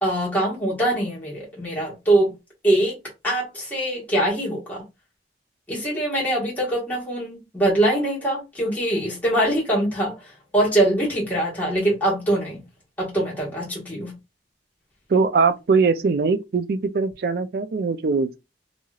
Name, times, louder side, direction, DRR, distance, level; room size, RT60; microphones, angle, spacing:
voice 1, 0.0-2.3 2.6-3.0 3.2-4.8 5.7-12.6 13.0-14.1, right 1 dB, 10° left, 1.4 m, -23 dB
voice 2, 15.1-18.4, right 4 dB, 55° right, 0.4 m, -21 dB
3.1 x 2.7 x 2.3 m
head